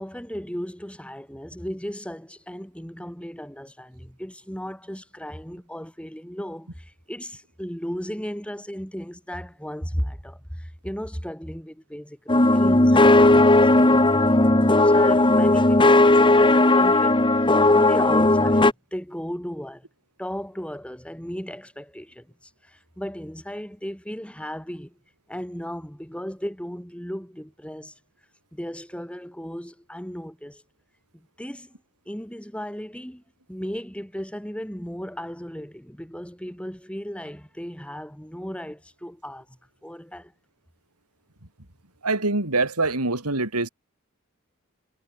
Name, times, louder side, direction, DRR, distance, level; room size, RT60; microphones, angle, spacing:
voice 1, 0.0-19.9 20.2-22.3 22.6-25.0 25.3-27.9 28.5-30.6 31.1-31.8 32.1-33.2 33.5-40.3, equal, 5° left, 7.8 m, -35 dB
sound 1, 12.3-18.7, left 2 dB, 20° left, 1.6 m, -16 dB
voice 2, 42.0-43.7, right 3 dB, 90° right, 4.0 m, -24 dB
head